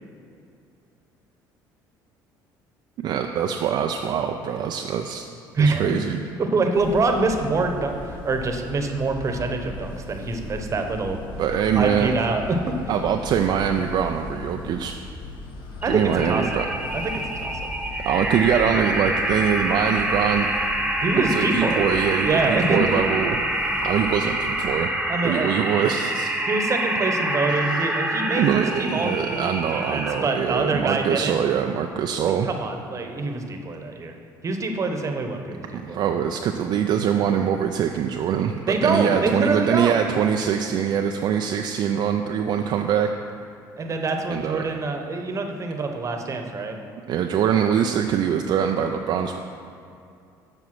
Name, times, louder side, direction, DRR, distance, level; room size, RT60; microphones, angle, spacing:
voice 1, 3.0-5.2 5.6-6.2 11.4-12.1 12.9-14.9 15.9-16.7 18.1-20.5 21.3-23.4 23.8-24.9 25.2-26.3 27.7-27.8 28.4-32.5 35.7-43.1 44.3-44.7 47.1-49.4, right 8 dB, 60° right, 4 dB, 0.4 m, -23 dB
voice 2, 5.5-5.9 6.4-11.2 11.7-12.6 15.8-16.6 16.9-17.7 21.0-21.9 22.2-22.8 25.1-25.6 26.5-31.4 32.2-34.1 34.4-36.0 38.7-40.0 43.8-46.8, right 3 dB, 35° right, 5 dB, 1.0 m, -25 dB
sound 1, 6.8-24.8, left 2 dB, 60° left, 1.2 m, -38 dB
sound 2, 15.8-30.4, right 1 dB, 5° right, 1.1 m, -26 dB
7.5 x 5.2 x 6.1 m, 2.5 s
supercardioid pair, 85°, 9 cm